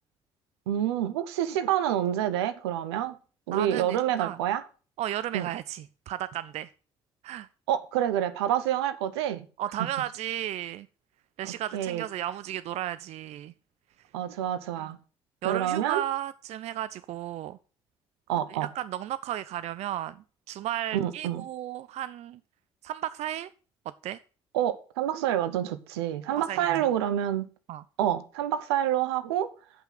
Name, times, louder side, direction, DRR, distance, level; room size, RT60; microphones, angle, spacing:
voice 1, 0.7-3.1 3.5-4.6 5.3-5.5 7.7-9.5 11.4-12.1 14.1-15.0 15.4-16.0 18.3-18.7 20.9-21.4 24.5-27.5 28.0-29.5, right 11 dB, 75° right, 0.8 m, -28 dB
voice 2, 3.5-4.4 5.0-6.7 7.2-7.5 9.6-10.9 11.4-13.5 14.8-14.9 15.4-17.6 18.5-20.2 20.5-22.4 22.8-23.5 24.0-24.2 26.5-26.7 27.7-27.8, right 12 dB, 55° right, 0.4 m, -34 dB
8.0 x 5.7 x 7.4 m
figure-of-eight pair, 50°, 14 cm